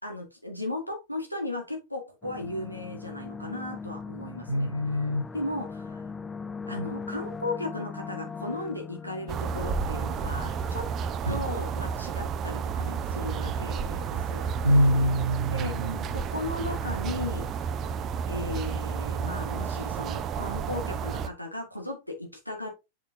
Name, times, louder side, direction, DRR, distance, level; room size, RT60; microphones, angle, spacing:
voice 1, 0.0-4.7 5.3-6.0 6.7-10.9 11.3-14.5 15.5-15.7 16.1-17.5 18.3-22.7, left 2 dB, 90° left, 2.0 m, -36 dB
sound 1, 2.2-12.0, left 5 dB, 15° left, 0.5 m, -40 dB
voice 2, 4.5-5.3 11.3-11.4 14.6-16.0, equal, 80° right, 1.0 m, -24 dB
sound 2, 9.3-21.3, right 6 dB, 30° right, 0.6 m, -31 dB
7.2 x 5.1 x 2.8 m
figure-of-eight pair, 90°, 0 cm